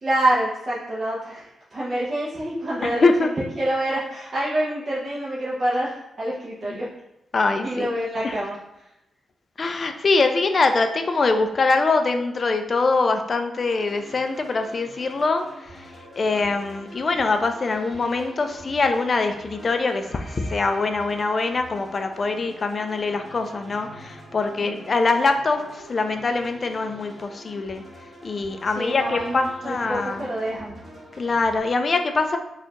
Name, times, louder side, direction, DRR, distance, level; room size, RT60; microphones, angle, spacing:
voice 1, 0.0-6.9 7.6-8.6 24.6-24.8 28.7-30.8, right 1 dB, 40° right, -8 dB, 0.8 m, -27 dB
voice 2, 2.8-3.3 6.7-6.8 7.3-7.9 8.2-8.3 9.6-15.9 16.2-27.8 28.2-30.3 31.2-32.4, left 3 dB, 45° left, 6 dB, 0.4 m, -23 dB
sound 1, 13.6-31.6, equal, 20° right, 1.4 m, -44 dB
4.2 x 2.4 x 2.9 m, 0.91 s
cardioid pair, 80°, 0 cm